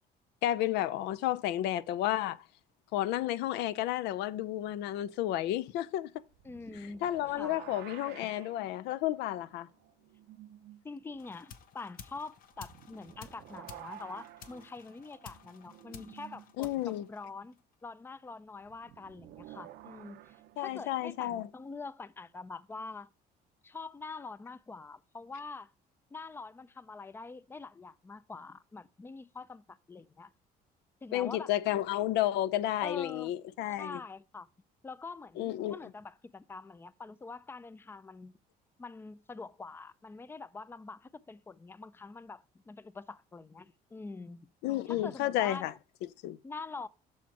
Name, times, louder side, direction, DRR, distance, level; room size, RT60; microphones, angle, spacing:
voice 1, 0.4-2.4 2.9-6.1 7.0-9.7 16.6-17.1 20.6-21.5 31.1-34.0 35.4-35.8 44.6-45.7 46.2-46.4, left 13 dB, 85° left, 0.4 m, -31 dB
sound 1, 6.3-10.8 11.1-11.2 12.5-16.5 18.6-21.5, right 12 dB, 80° right, 0.6 m, -52 dB
voice 2, 6.4-7.6 10.8-23.1 23.6-25.7 26.1-30.3 31.0-31.5 32.8-33.3 33.8-34.5 34.8-38.3 38.8-44.5 44.9-45.7 46.4-46.9, left 4 dB, 15° left, 0.4 m, -45 dB
sound 2, 11.2-17.7, left 7 dB, 55° left, 0.7 m, -53 dB
6.3 x 4.3 x 4.5 m
cardioid pair, 110°, 17 cm